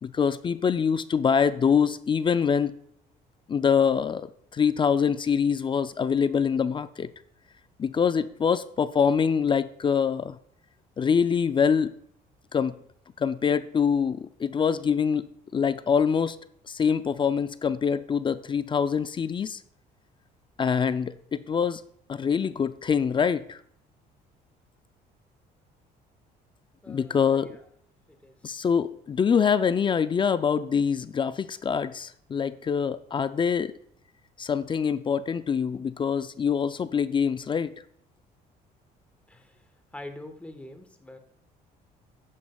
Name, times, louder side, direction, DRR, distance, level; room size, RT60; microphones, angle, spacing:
voice 1, 0.0-2.7 3.5-7.1 7.8-10.4 11.0-11.9 12.5-12.8 13.2-16.4 16.7-19.6 20.6-21.8 22.1-23.6 26.9-27.6 28.4-33.7 34.4-37.7, left 6 dB, 30° left, 13 dB, 0.4 m, -25 dB
voice 2, 26.8-27.6 28.1-28.3 39.3-39.6 39.9-41.2, left 1 dB, 10° left, 5 dB, 1.3 m, -44 dB
12.0 x 8.5 x 2.3 m, 0.66 s
cardioid pair, 110°, 17 cm